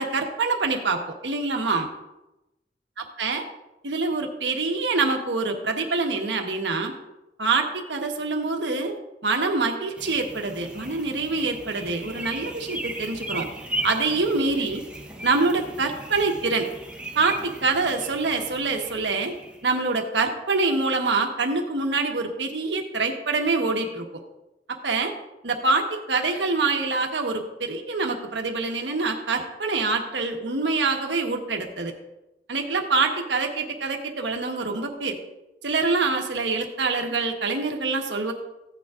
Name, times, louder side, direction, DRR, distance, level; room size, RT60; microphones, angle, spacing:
voice 1, 0.0-1.9 3.2-3.4 3.8-6.9 7.4-9.0 9.2-13.5 13.8-14.8 15.2-16.7 17.1-19.4 19.6-24.0 24.7-25.1 25.4-31.9 32.5-35.1 35.6-38.3, right 3 dB, 90° right, 3 dB, 1.2 m, -25 dB
sound 1, 10.0-19.9, right 1 dB, 5° right, 0.9 m, -37 dB
15.0 x 9.2 x 2.5 m, 0.95 s
head